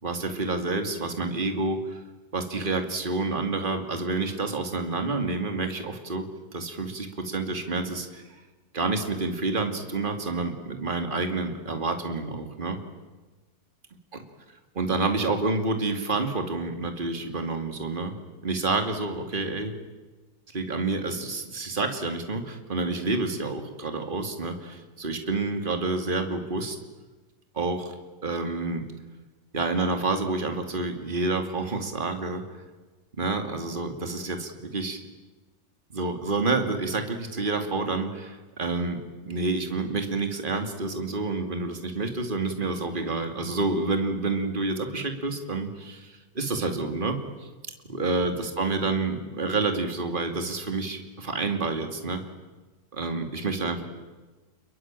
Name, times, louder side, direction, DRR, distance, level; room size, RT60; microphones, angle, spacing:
voice 1, 0.0-2.0 2.3-6.3 6.5-8.4 8.7-12.8 14.1-14.2 14.7-18.2 18.4-19.7 20.5-26.8 27.5-27.9 28.2-28.8 29.5-32.4 33.2-35.0 35.9-47.5 47.9-52.2 52.9-53.8, right 3 dB, 30° right, 6 dB, 2.8 m, -28 dB
29.5 x 22.0 x 9.0 m, 1.2 s
omnidirectional pair, 1.7 m